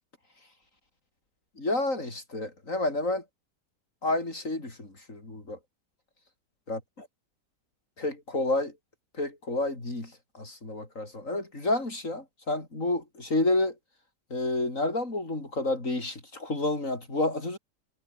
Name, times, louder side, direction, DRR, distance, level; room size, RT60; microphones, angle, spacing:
voice 1, 1.6-3.2 4.0-5.6 6.7-7.1 8.0-8.7 9.2-13.7 14.3-17.6, left 2 dB, 45° left, 5.6 m, -30 dB
omnidirectional pair, 1.8 m